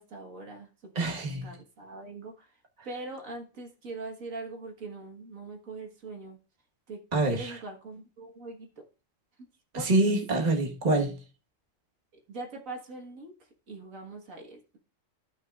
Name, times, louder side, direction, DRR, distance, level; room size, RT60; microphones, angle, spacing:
voice 1, 0.0-2.5 2.8-6.4 6.9-7.0 7.3-8.7 9.7-9.9 12.3-13.3 13.7-14.8, right 3 dB, 85° right, 2.0 m, -42 dB
voice 2, 0.9-1.5 7.1-7.6 9.7-11.2, right 2 dB, 35° right, 1.5 m, -26 dB
14.0 x 5.8 x 2.4 m
omnidirectional pair, 1.4 m